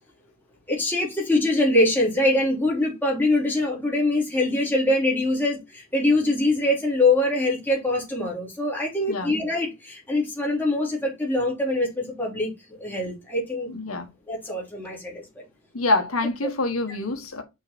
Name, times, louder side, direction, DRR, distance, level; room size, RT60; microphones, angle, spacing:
voice 1, 0.7-13.7 14.3-15.4, left 2 dB, 10° left, 3.2 m, -23 dB
voice 2, 13.7-14.1 15.7-17.4, left 2 dB, 80° left, 1.6 m, -26 dB
6.6 x 4.6 x 4.3 m
head